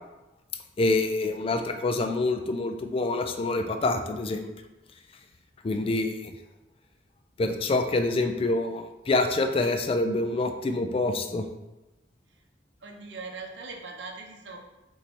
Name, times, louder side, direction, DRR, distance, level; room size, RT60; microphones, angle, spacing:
voice 1, 0.8-4.5 5.6-6.3 7.4-11.5, left 2 dB, 30° left, 7 dB, 0.3 m, -26 dB
voice 2, 12.8-14.6, right 4 dB, 75° right, 2 dB, 0.7 m, -40 dB
4.5 x 2.7 x 4.2 m, 1.0 s
head